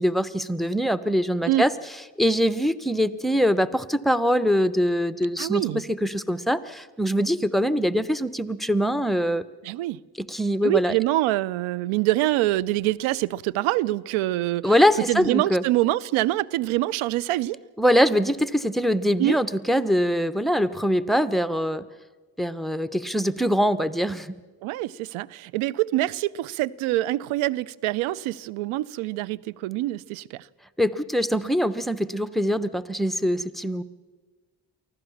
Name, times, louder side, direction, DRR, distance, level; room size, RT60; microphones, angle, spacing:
voice 1, 0.0-1.7 2.2-9.4 10.2-10.9 14.6-15.6 17.8-21.8 22.4-24.3 30.8-33.8, equal, ahead, 1.0 m, -23 dB
voice 2, 5.4-5.8 9.6-10.0 10.6-14.7 15.1-17.6 19.2-19.4 24.6-30.5, right 16 dB, 90° right, 0.6 m, -25 dB
24.0 x 15.5 x 7.2 m
supercardioid pair, 50°, 48 cm